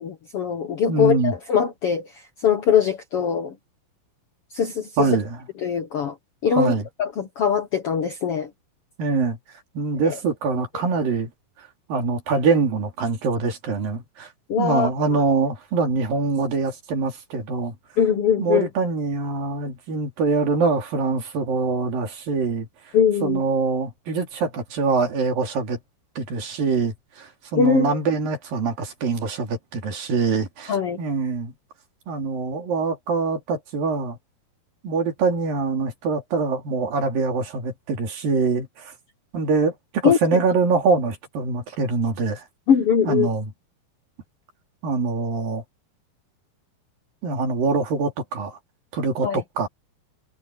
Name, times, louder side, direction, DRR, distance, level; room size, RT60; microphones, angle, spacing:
voice 1, 0.0-2.1 2.4-3.5 4.5-4.9 5.6-6.1 6.4-6.7 7.0-8.5 10.0-10.1 14.5-15.2 18.0-18.7 22.9-23.4 27.6-27.9 30.7-31.0 40.0-40.4 42.7-43.3 49.2-49.4, left 7 dB, 60° left, 1.5 m, -21 dB
voice 2, 0.9-1.3 5.0-5.4 6.5-6.8 9.0-9.4 9.7-11.3 11.9-14.3 14.6-17.7 18.4-22.7 23.2-25.8 26.2-31.5 32.1-34.2 34.8-38.9 39.3-42.4 43.1-43.5 44.8-45.6 47.2-48.6 48.9-49.7, right 4 dB, 70° right, 4.8 m, -24 dB
omnidirectional pair, 4.3 m